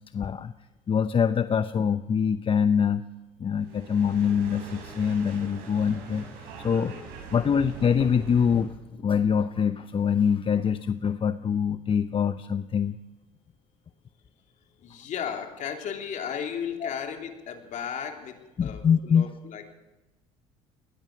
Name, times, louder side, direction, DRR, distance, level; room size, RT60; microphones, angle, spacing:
voice 1, 0.1-0.5 0.9-3.1 3.4-6.2 6.6-7.0 7.3-8.7 9.0-13.0 16.8-16.9 18.6-19.3, left 7 dB, 35° left, 11 dB, 0.8 m, -24 dB
sound 1, 3.6-8.7, right 5 dB, 80° right, 7.0 m, -42 dB
voice 2, 6.7-7.7 14.8-19.7, left 8 dB, 55° left, 4 dB, 3.4 m, -36 dB
20.5 x 16.5 x 7.6 m, 1.1 s
supercardioid pair, 85°, 16 cm